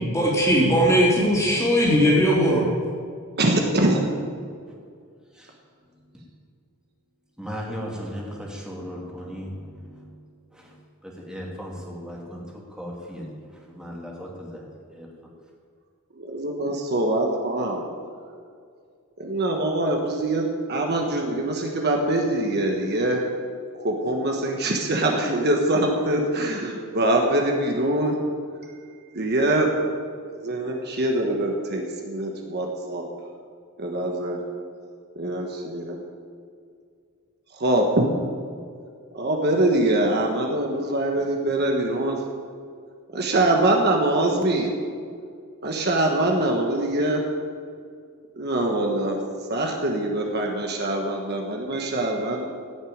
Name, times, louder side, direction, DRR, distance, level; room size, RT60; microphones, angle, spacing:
voice 1, 0.1-2.7, equal, 15° left, -5 dB, 3.7 m, -19 dB
voice 2, 3.4-4.0 16.2-17.8 19.2-23.2 23.8-28.2 29.1-29.7 30.3-33.1 33.8-34.4 35.2-36.0 37.6-38.1 39.1-42.2 43.1-44.7 45.6-47.2 48.4-49.2 49.5-52.5, right 1 dB, 50° right, 1 dB, 1.4 m, -23 dB
voice 3, 7.4-10.1 10.5-10.7 11.2-12.4 12.7-13.3 13.7-14.6 14.9-15.1, equal, 5° right, -3 dB, 2.6 m, -36 dB
16.0 x 6.6 x 8.8 m, 2.2 s
head